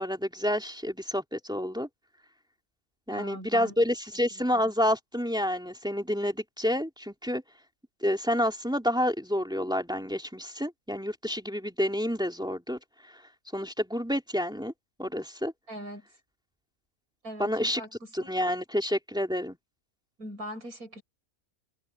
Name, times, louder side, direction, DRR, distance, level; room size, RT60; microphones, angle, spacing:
voice 1, 0.0-1.9 3.1-7.4 8.0-12.8 13.1-13.2 13.5-14.7 15.0-15.5 17.4-17.8 18.1-19.6, equal, 5° right, 2.9 m, -29 dB
voice 2, 3.1-3.8 4.3-4.7 15.7-16.1 17.2-18.3 20.2-21.0, equal, 80° right, 7.4 m, -41 dB
omnidirectional pair, 1.5 m